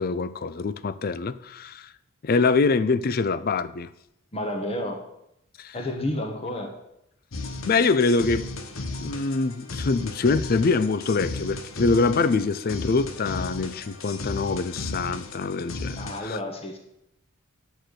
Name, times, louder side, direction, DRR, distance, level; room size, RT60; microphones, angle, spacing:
voice 1, 0.0-1.9 2.2-3.9 5.6-5.8 7.6-8.4 9.0-16.4, left 4 dB, 45° left, 15 dB, 0.4 m, -24 dB
voice 2, 4.3-5.0 5.7-6.7 15.9-16.8, left 1 dB, 25° left, 3 dB, 1.2 m, -30 dB
sound 1, 7.3-16.2, left 3 dB, 65° left, 1.0 m, -35 dB
9.9 x 4.5 x 7.8 m, 0.80 s
head